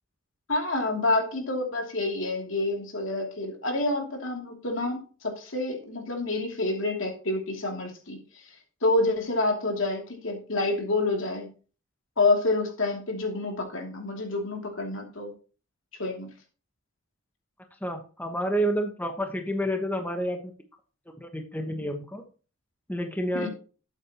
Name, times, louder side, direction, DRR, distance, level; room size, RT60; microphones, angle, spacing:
voice 1, 0.5-8.5 8.8-11.5 12.2-15.3 16.0-16.3 23.3-23.5, left 2 dB, 70° left, 2 dB, 2.8 m, -28 dB
voice 2, 17.8-20.5 21.2-22.2 22.9-23.5, equal, 10° left, 4 dB, 1.2 m, -29 dB
13.0 x 8.2 x 3.0 m, 0.37 s
head